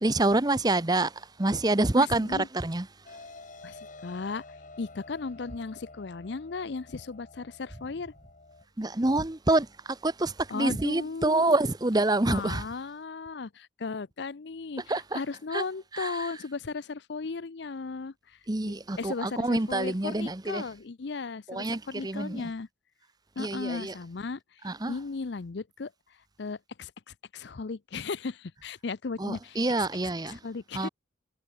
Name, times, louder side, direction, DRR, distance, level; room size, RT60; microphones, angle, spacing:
voice 1, 0.0-2.9 8.8-12.6 14.9-15.2 15.5-15.6 15.9-16.3 18.5-20.6 21.5-22.5 23.4-23.9 24.6-25.0 29.2-30.4 30.7-30.9, right 2 dB, 20° right, 0.8 m, -27 dB
voice 2, 1.9-2.5 3.6-4.4 4.8-8.1 10.5-11.6 12.3-18.4 18.6-22.7 23.4-24.6 24.9-25.9 26.4-29.9 30.2-30.9, left 4 dB, 60° left, 0.6 m, -36 dB
sound 1, 3.1-8.6, left 3 dB, 40° left, 1.6 m, -49 dB
head